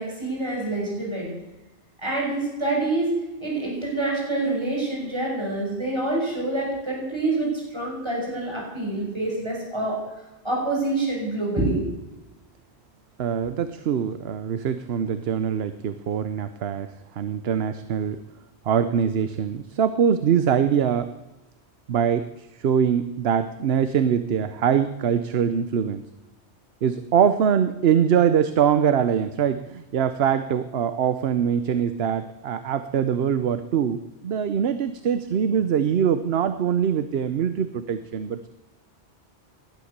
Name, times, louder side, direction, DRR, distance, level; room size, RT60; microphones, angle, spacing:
voice 1, 0.0-1.4 2.0-3.1 3.4-11.8, right 2 dB, 25° right, -3 dB, 5.9 m, -26 dB
voice 2, 13.2-18.2 18.6-21.1 21.9-26.0 26.8-38.5, right 8 dB, 65° right, 11 dB, 1.0 m, -23 dB
19.0 x 11.5 x 6.7 m, 1.0 s
omnidirectional pair, 1.1 m